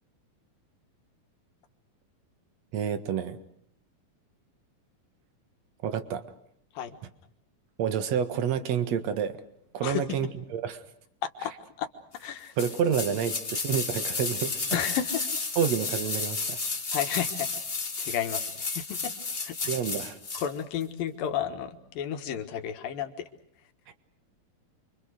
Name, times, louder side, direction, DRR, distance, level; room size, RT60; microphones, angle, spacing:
voice 1, 2.7-3.4 5.8-6.2 7.8-9.4 9.7-10.8 12.6-14.7 15.6-16.6 19.6-20.2, right 8 dB, 55° right, 10 dB, 2.4 m, -29 dB
voice 2, 9.8-10.2 11.2-11.5 11.8-11.9 12.2-12.5 14.7-15.3 16.9-17.5 18.0-18.5 18.8-19.1 19.4-19.6 20.3-23.1, left 9 dB, 75° left, 7 dB, 3.3 m, -32 dB
sound 1, 12.6-20.5 20.8-20.9, left 4 dB, 50° left, 0.7 m, -32 dB
28.5 x 24.5 x 6.5 m, 0.68 s
omnidirectional pair, 4.3 m